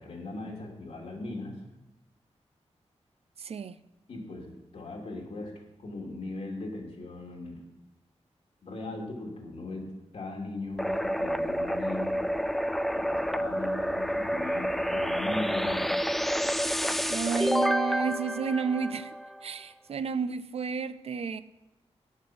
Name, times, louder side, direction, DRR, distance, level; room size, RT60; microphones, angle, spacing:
voice 1, 0.0-1.6 4.1-5.5 5.8-7.6 8.6-12.2 12.9-16.0, left 2 dB, 65° left, 2.7 m, -38 dB
voice 2, 3.4-3.8 17.1-19.1 19.4-21.4, right 5 dB, 60° right, 0.5 m, -31 dB
sound 1, 10.8-19.4, equal, ahead, 0.4 m, -29 dB
10.5 x 8.1 x 6.3 m
wide cardioid pair, 125°, 11 cm